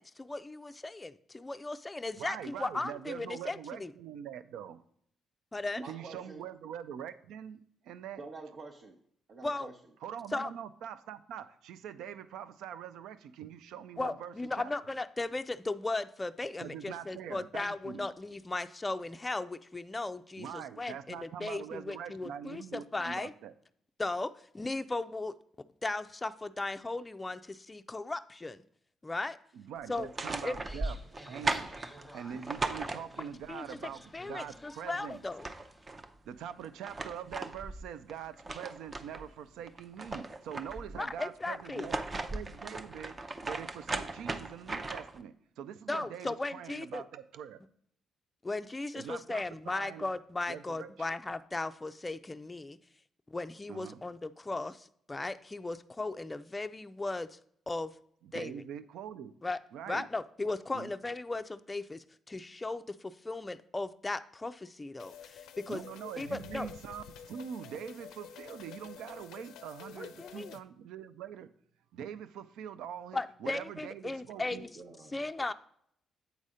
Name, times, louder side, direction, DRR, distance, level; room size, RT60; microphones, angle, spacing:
voice 1, 0.0-3.9 5.5-5.8 9.4-9.7 10.3-10.5 14.0-23.3 24.0-25.3 25.8-28.6 29.0-29.4 29.9-30.1 30.4-30.6 33.5-33.7 34.1-35.5 41.0-41.9 45.9-47.0 48.4-52.8 53.3-57.4 57.7-57.9 58.3-58.5 59.4-59.6 59.9-65.8 66.2-66.7 70.0-70.5 73.1-74.7 75.1-75.5, left 2 dB, 20° left, 10 dB, 0.4 m, -37 dB
voice 2, 2.2-4.8 5.8-8.2 10.0-14.7 16.6-18.1 20.4-23.6 29.5-31.0 31.3-31.9 32.1-35.2 36.3-43.2 43.4-47.6 49.0-50.1 50.5-51.1 53.7-54.0 58.2-59.3 59.7-60.1 60.7-60.9 65.7-71.5 71.9-74.6, right 9 dB, 85° right, 13 dB, 0.4 m, -43 dB
voice 3, 5.8-6.4 8.2-9.0 9.3-9.7 74.3-75.3, right 3 dB, 55° right, -1 dB, 0.9 m, -47 dB
sound 1, 29.9-33.5 34.9-35.0 35.2-36.1 36.6-39.3 39.7-41.0 41.6-45.2, right 2 dB, 30° right, 0.6 m, -37 dB
sound 2, 30.6-35.9, equal, 5° right, 1.2 m, -54 dB
sound 3, 65.0-70.6, left 8 dB, 90° left, 0.4 m, -49 dB
8.1 x 4.1 x 4.9 m, 0.67 s
cardioid pair, 90°, 0 cm